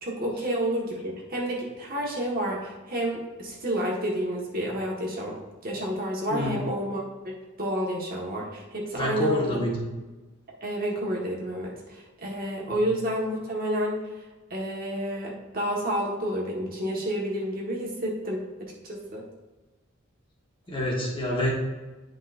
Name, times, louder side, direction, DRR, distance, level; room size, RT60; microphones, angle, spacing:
voice 1, 0.0-9.6 10.6-11.7 12.2-14.0 14.5-19.2, equal, 45° right, -3 dB, 1.6 m, -30 dB
voice 2, 8.9-9.8 12.7-12.9 20.7-21.5, left 1 dB, 25° left, -3 dB, 1.6 m, -27 dB
10.0 x 5.2 x 2.6 m, 1.2 s
head